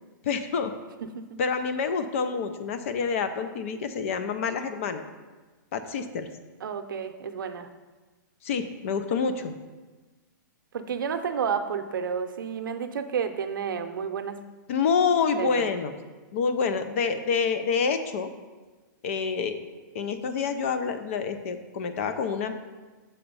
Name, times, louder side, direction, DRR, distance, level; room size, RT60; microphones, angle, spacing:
voice 1, 0.2-0.7 1.4-5.0 5.7-6.3 8.4-9.5 14.7-15.9 16.3-18.3 19.0-19.6 19.9-22.5, left 5 dB, 40° left, 10 dB, 0.5 m, -27 dB
voice 2, 1.0-1.4 6.6-7.7 10.7-14.5 15.4-15.7, right 7 dB, 80° right, 7 dB, 0.6 m, -31 dB
7.0 x 4.2 x 5.4 m, 1.3 s
hypercardioid pair, 170°, 11 cm